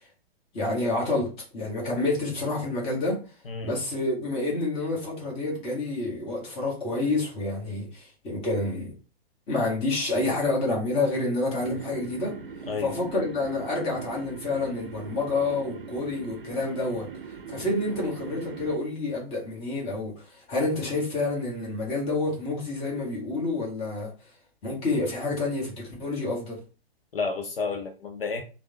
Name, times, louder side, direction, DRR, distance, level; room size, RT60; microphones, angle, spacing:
voice 1, 0.5-3.2 3.6-8.9 9.5-12.4 12.8-17.1 17.5-24.1 24.6-26.6, left 2 dB, 20° left, 1.0 m, -28 dB
sound 1, 11.6-18.8, right 6 dB, 55° right, 0.6 m, -41 dB
voice 2, 12.7-13.0 27.1-28.4, left 4 dB, 65° left, 0.6 m, -31 dB
3.3 x 2.0 x 2.7 m
figure-of-eight pair, 115°, 31 cm